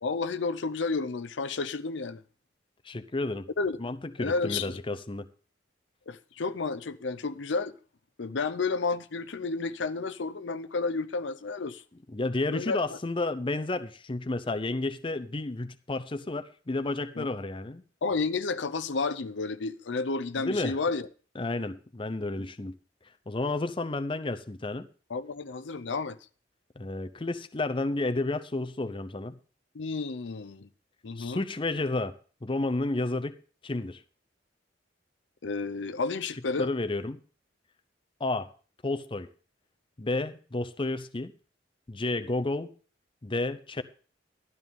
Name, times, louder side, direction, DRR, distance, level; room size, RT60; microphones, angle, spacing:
voice 1, 0.0-2.2 3.6-3.8 4.2-4.8 6.1-7.8 8.2-11.8 12.5-12.8 17.2-17.3 18.0-21.1 22.4-22.5 25.1-26.2 29.7-30.7 31.0-31.4 35.4-36.7, left 4 dB, 80° left, 0.7 m, -31 dB
voice 2, 2.8-3.5 3.8-5.3 12.1-17.8 20.4-20.8 21.4-22.7 23.3-24.9 26.8-29.4 31.2-32.1 32.4-33.4 33.6-34.0 36.6-37.2 38.2-38.5 38.8-39.3 40.0-41.3 41.9-42.7 43.2-43.8, left 2 dB, 30° left, 0.6 m, -31 dB
12.5 x 11.0 x 3.7 m
head